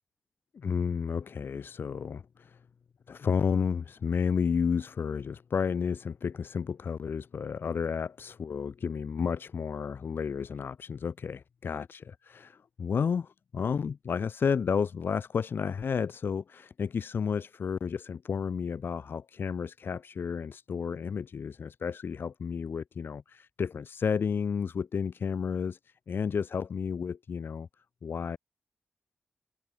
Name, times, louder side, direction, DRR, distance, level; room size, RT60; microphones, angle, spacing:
voice 1, 0.5-2.6 3.1-27.7 28.0-28.4, left 6 dB, 75° left, 1.3 m, -32 dB
cardioid pair, 55°, 4 cm